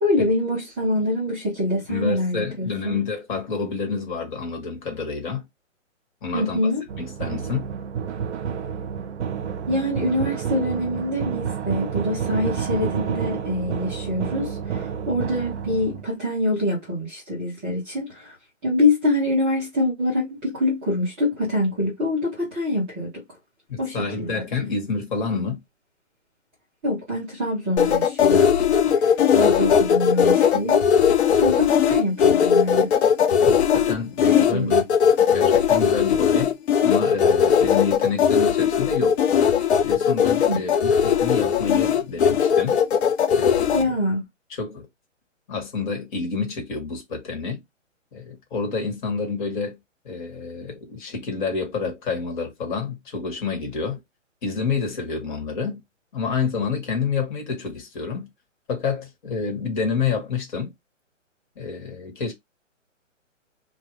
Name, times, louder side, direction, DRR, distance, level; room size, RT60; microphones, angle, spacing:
voice 1, 0.0-3.0 6.3-6.9 9.7-18.3 18.6-23.2 23.8-24.4 26.8-28.6 28.9-30.8 31.4-32.9 34.2-34.8 40.5-40.6 43.7-44.2, left 1 dB, 10° right, 0.5 m, -25 dB
voice 2, 1.9-5.4 6.2-6.7 7.0-7.7 23.7-25.6 33.4-34.8 35.3-36.5 36.8-39.3 39.8-42.8 43.3-44.0 44.6-44.9 45.5-47.6 48.1-49.8 50.0-54.0 54.4-55.8 56.1-58.3 58.7-60.7 61.6-62.3, left 5 dB, 40° left, 1.2 m, -28 dB
sound 1, 6.9-16.0, right 7 dB, 60° right, 0.6 m, -29 dB
sound 2, 27.8-43.8, left 7 dB, 55° left, 0.6 m, -19 dB
2.4 x 2.2 x 3.0 m
hypercardioid pair, 140°, 39 cm